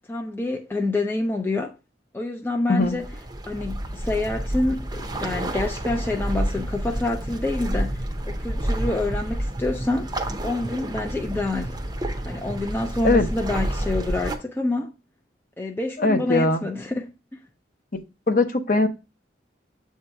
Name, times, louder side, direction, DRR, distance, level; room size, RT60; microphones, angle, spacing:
voice 1, 0.0-1.7 2.1-3.1 3.4-10.1 10.4-11.7 12.3-14.9 15.6-17.1, left 2 dB, 10° left, 0.4 m, -27 dB
sound 1, 2.8-14.4, right 1 dB, 20° right, 0.7 m, -29 dB
voice 2, 16.0-16.6 18.3-18.9, left 2 dB, 45° left, 0.7 m, -20 dB
7.8 x 2.7 x 4.5 m
head